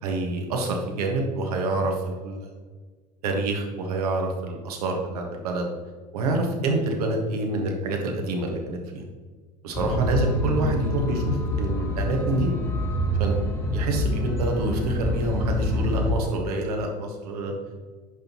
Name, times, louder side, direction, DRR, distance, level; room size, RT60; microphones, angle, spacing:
voice 1, 0.0-2.5 3.2-5.7 6.1-9.0 9.6-12.5 13.2-13.4 13.7-17.5, right 2 dB, 70° right, 2 dB, 1.5 m, -27 dB
sound 1, 9.7-16.1, equal, 15° left, 1.4 m, -26 dB
10.0 x 5.3 x 3.0 m, 1.4 s
figure-of-eight pair, 75°, 20 cm